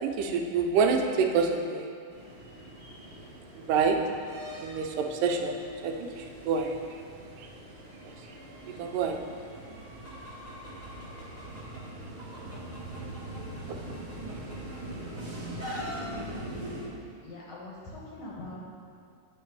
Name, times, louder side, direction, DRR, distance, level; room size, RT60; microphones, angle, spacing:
voice 1, 0.0-1.9 3.6-4.0 4.6-5.6 5.8-6.8 8.8-9.2, right 5 dB, 85° right, 3 dB, 2.2 m, -27 dB
sound 1, 2.1-16.9, right 1 dB, 40° right, 1.4 m, -42 dB
Chicken rooster, 10.0-11.8 12.2-14.8 15.1-16.0, left 1 dB, 20° left, 0.3 m, -42 dB
voice 2, 12.9-13.5 13.8-13.9 14.5-15.1 16.0-16.6 17.2-18.6, left 2 dB, 65° left, -5 dB, 1.7 m, -46 dB
9.3 x 3.7 x 4.6 m, 2.3 s
omnidirectional pair, 3.8 m